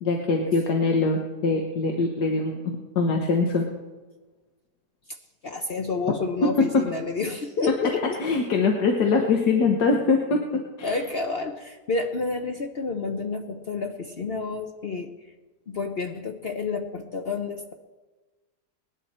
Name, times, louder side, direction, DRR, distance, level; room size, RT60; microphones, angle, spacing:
voice 1, 0.0-2.6 3.0-3.7 6.6-6.8 8.2-10.4 10.8-11.0, left 4 dB, 85° left, 2 dB, 1.8 m, -22 dB
voice 2, 5.4-8.2 10.8-15.1 15.7-17.7, left 4 dB, 50° left, 4 dB, 0.8 m, -29 dB
19.5 x 11.5 x 4.3 m, 1.2 s
omnidirectional pair, 1.7 m